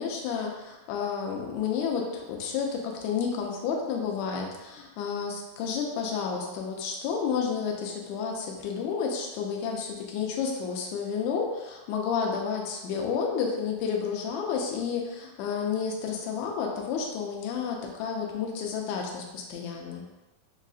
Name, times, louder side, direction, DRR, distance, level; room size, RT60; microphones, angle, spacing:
voice 1, 0.0-20.0, left 6 dB, 75° left, 0 dB, 1.8 m, -31 dB
6.4 x 2.5 x 2.4 m, 1.1 s
omnidirectional pair, 3.7 m